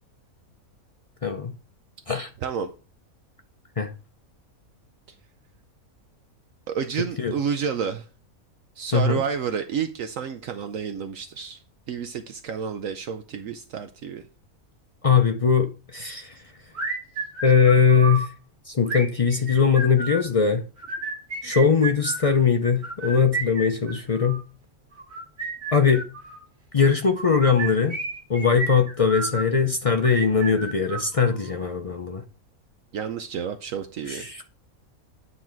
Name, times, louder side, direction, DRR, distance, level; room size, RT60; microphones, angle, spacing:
voice 1, 1.2-1.5 2.1-2.3 3.8-3.9 7.2-7.3 8.9-9.2 15.0-16.4 17.4-18.3 18.7-20.6 21.4-24.4 25.7-26.1 26.7-28.0 28.3-32.2 34.1-34.4, left 6 dB, 55° left, 0.3 m, -21 dB
voice 2, 6.7-8.1 8.8-11.6 11.9-14.2 32.9-34.3, right 7 dB, 70° right, 1.0 m, -30 dB
sound 1, 16.7-18.3 18.8-20.3 20.8-22.3 22.8-24.4 25.0-26.4 27.1-29.5 30.0-31.5, right 3 dB, 45° right, 2.4 m, -32 dB
9.5 x 4.1 x 4.4 m
omnidirectional pair, 1.5 m